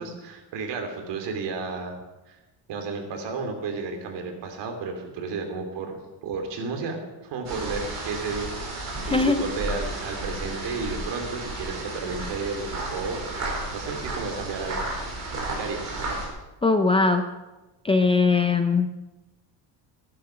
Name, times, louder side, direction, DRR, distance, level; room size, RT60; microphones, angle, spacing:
voice 1, 0.0-2.0 2.3-2.4 2.7-8.5 9.1-13.2 13.7-15.3 15.5-16.1, right 4 dB, 70° right, 4 dB, 3.0 m, -33 dB
sound 1, 7.4-16.3, right 2 dB, 35° right, 4.6 m, -33 dB
voice 2, 9.0-9.4 16.6-17.3 17.8-18.9, left 3 dB, 15° left, 7 dB, 0.4 m, -20 dB
15.0 x 11.5 x 5.8 m, 1.1 s
cardioid pair, 175°, 44 cm